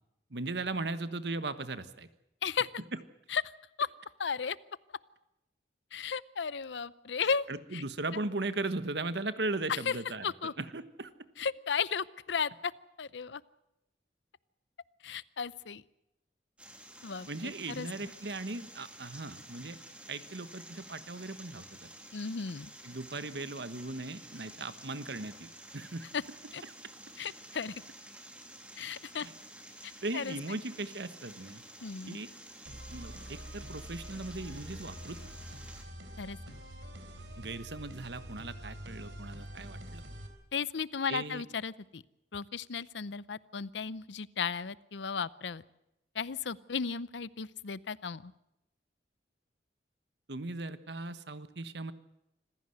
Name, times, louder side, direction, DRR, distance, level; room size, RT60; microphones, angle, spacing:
voice 1, 0.3-2.1 2.9-3.0 7.5-10.3 10.6-11.1 17.3-19.8 20.1-21.9 22.8-26.1 26.6-26.7 29.2-29.3 30.0-31.6 32.1-32.3 32.9-35.2 37.4-40.0 41.1-41.4 50.3-51.9, right 2 dB, 70° right, 12 dB, 1.3 m, -38 dB
voice 2, 4.2-4.6 5.9-7.5 7.7-7.8 9.7-10.0 10.2-10.5 11.4-12.7 13.0-13.4 15.0-15.8 17.0-18.1 22.1-22.7 26.1-26.2 26.5-26.6 27.2-27.8 28.8-29.3 29.8-30.6 31.8-32.2 36.2-36.6 40.5-42.0 42.3-45.6 46.1-48.3, left 6 dB, 85° left, 19 dB, 0.7 m, -35 dB
sound 1, 16.6-35.8, right 1 dB, 5° right, 2.9 m, -51 dB
sound 2, 32.7-40.3, equal, 90° right, 4.2 m, -46 dB
26.0 x 15.5 x 7.9 m, 0.90 s
head